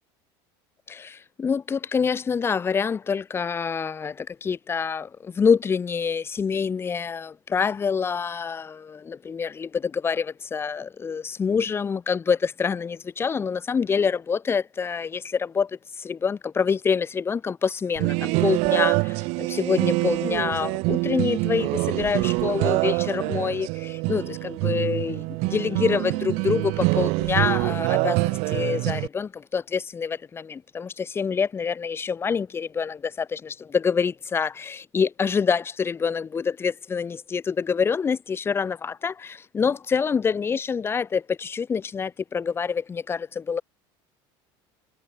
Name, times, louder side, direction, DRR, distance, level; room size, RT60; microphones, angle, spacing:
voice 1, 0.9-43.6, left 6 dB, 20° left, 2.6 m, -26 dB
sound 1, 18.0-29.1, right 28 dB, 65° right, 1.2 m, -25 dB
cardioid pair, 150°, 12 cm